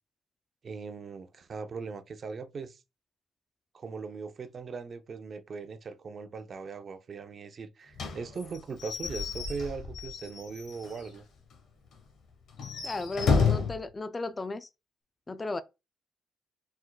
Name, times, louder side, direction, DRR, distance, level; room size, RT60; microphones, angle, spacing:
voice 1, 0.6-2.8 3.7-11.2 13.4-13.6, right 5 dB, 45° right, 0.5 m, -39 dB
Slam / Squeak / Wood, 7.9-11.2 11.5-11.6 11.9-12.0 12.5-13.8, left 5 dB, 70° left, 1.3 m, -30 dB
voice 2, 12.8-14.7 15.3-15.6, left 2 dB, 25° left, 0.3 m, -35 dB
4.3 x 4.3 x 2.3 m
cardioid pair, 90°, 0 cm